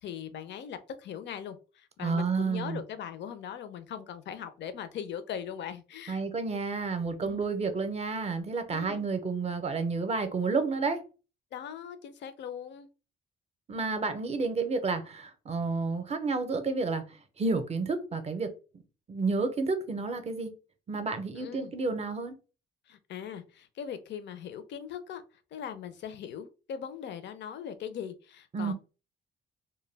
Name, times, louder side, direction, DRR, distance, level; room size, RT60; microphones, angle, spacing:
voice 1, 0.0-6.2 7.2-7.4 8.7-9.0 11.5-12.9 21.4-21.7 22.9-25.2 25.5-28.7, left 8 dB, 65° left, 0.5 m, -40 dB
voice 2, 2.0-2.8 6.1-11.0 13.7-17.0 17.4-18.5 19.1-20.5 20.9-22.3 28.5-28.7, right 4 dB, 30° right, 0.6 m, -30 dB
2.2 x 2.2 x 3.2 m
cardioid pair, 90°, 20 cm